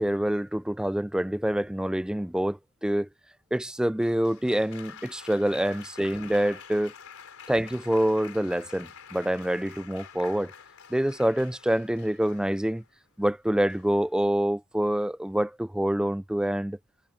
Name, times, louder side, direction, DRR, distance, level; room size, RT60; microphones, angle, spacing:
voice 1, 0.0-3.1 3.5-6.9 7.5-10.5 10.9-12.8 13.2-16.8, right 1 dB, 5° right, 0.3 m, -26 dB
Applause, 4.0-12.9 13.7-14.1, left 7 dB, 75° left, 3.8 m, -48 dB
head